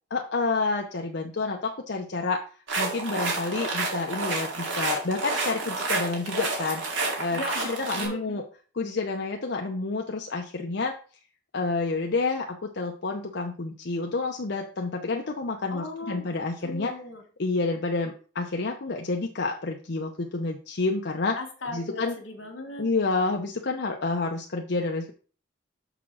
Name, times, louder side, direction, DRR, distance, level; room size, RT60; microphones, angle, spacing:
voice 1, 0.1-2.4 2.8-8.4 8.8-10.9 11.5-16.9 17.4-21.4 21.7-22.1 22.8-25.1, left 3 dB, 60° left, 2 dB, 0.7 m, -29 dB
sound 1, 2.7-8.1, right 3 dB, 75° right, 2.4 m, -29 dB
voice 2, 7.3-8.4 15.7-17.2 21.3-22.9, left 2 dB, 85° left, 3 dB, 1.8 m, -37 dB
6.7 x 3.6 x 6.1 m, 0.39 s
head